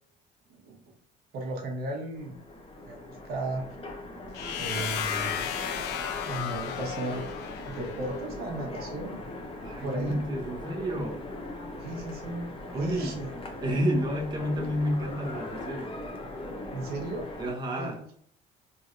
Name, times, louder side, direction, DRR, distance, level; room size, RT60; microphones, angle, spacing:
voice 1, 0.5-0.9 1.3-2.4 2.9-3.6 4.5-5.6 6.2-7.2 7.7-9.2 9.8-10.2 11.8-13.3 16.7-17.3 17.7-17.9, right 2 dB, 70° right, 1 dB, 1.0 m, -35 dB
Train, 2.1-17.5, left 2 dB, 35° left, 0.6 m, -40 dB
sound 1, 4.3-8.2, left 8 dB, 85° left, 0.5 m, -34 dB
voice 2, 9.6-11.2 12.7-13.2 13.6-15.9 17.4-18.0, equal, 25° right, 0 dB, 0.7 m, -30 dB
3.1 x 2.6 x 2.5 m, 0.66 s
cardioid pair, 110°, 17 cm